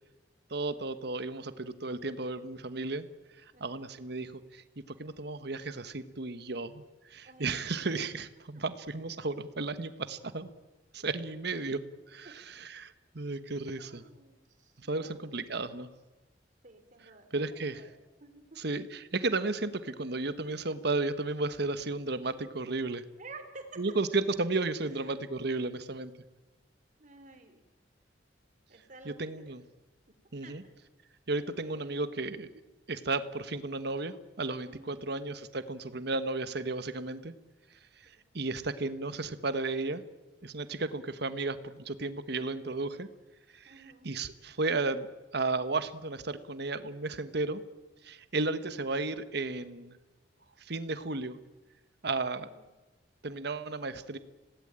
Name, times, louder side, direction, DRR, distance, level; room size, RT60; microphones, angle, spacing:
voice 1, 0.5-3.1 3.6-4.6 5.0-6.8 7.1-10.5 10.9-11.8 12.1-14.0 14.8-15.9 17.3-17.8 18.6-23.0 23.8-26.1 29.0-29.6 30.3-30.6 31.3-32.5 32.9-37.3 38.0-40.0 40.4-43.1 43.5-45.1 45.3-47.6 48.0-50.0 50.6-51.4 52.0-52.5 53.2-54.2, right 3 dB, 65° right, 12 dB, 1.3 m, -34 dB
voice 2, 3.5-3.9 7.2-7.5 11.4-11.7 12.2-12.3 13.8-15.3 16.6-17.5 17.7-17.9 18.2-18.6 23.2-23.8 27.0-27.6 28.7-29.2 29.4-29.5 30.4-30.7 34.7-35.1 38.0-38.3 43.6-44.1 48.8-49.1 52.4-52.7, right 3 dB, 45° right, 7 dB, 3.3 m, -52 dB
26.5 x 18.0 x 8.9 m, 1.2 s
head